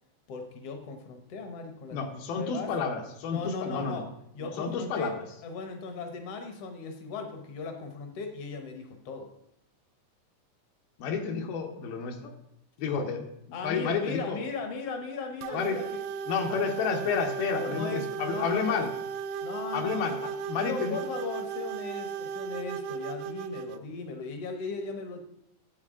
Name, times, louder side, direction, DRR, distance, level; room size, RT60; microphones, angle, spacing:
voice 1, 0.3-2.7 3.3-4.1 4.3-5.1 5.4-9.3 12.8-12.9 13.5-16.0 16.4-16.6 17.5-18.8 19.4-20.2 20.6-25.2, left 4 dB, 70° left, 5 dB, 1.4 m, -37 dB
voice 2, 1.9-4.1 4.4-5.2 11.0-12.3 12.8-13.3 13.6-14.4 15.5-15.8 16.3-18.9 19.7-21.0, left 6 dB, 90° left, 3 dB, 2.9 m, -31 dB
sound 1, 15.4-23.8, right 7 dB, 85° right, 2.3 m, -36 dB
10.5 x 7.5 x 3.7 m, 0.78 s
omnidirectional pair, 4.1 m